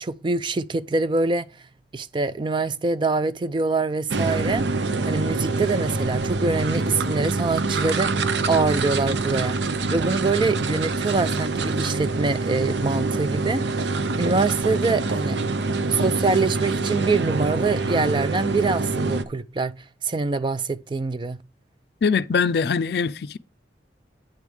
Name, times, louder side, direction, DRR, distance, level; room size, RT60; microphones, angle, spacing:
voice 1, 0.0-1.5 1.9-4.6 5.0-9.6 9.9-13.9 14.2-15.4 15.9-19.7 20.0-21.4, right 3 dB, 25° right, 0.4 m, -24 dB
sound 1, 4.1-19.2, right 3 dB, 75° right, 0.6 m, -25 dB
voice 2, 22.0-23.4, left 5 dB, 60° left, 0.4 m, -22 dB
9.3 x 3.6 x 6.3 m
head